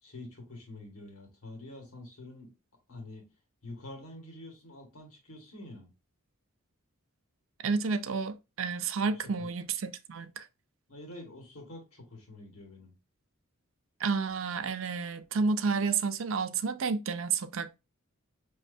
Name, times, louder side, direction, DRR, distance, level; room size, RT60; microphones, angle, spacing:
voice 1, 0.0-2.5 2.9-3.2 3.6-5.9 9.4-9.5 10.9-12.9, left 1 dB, 85° left, 1.7 m, -46 dB
voice 2, 7.6-10.5 14.0-17.7, right 5 dB, 60° right, 0.5 m, -30 dB
5.7 x 3.1 x 2.6 m
head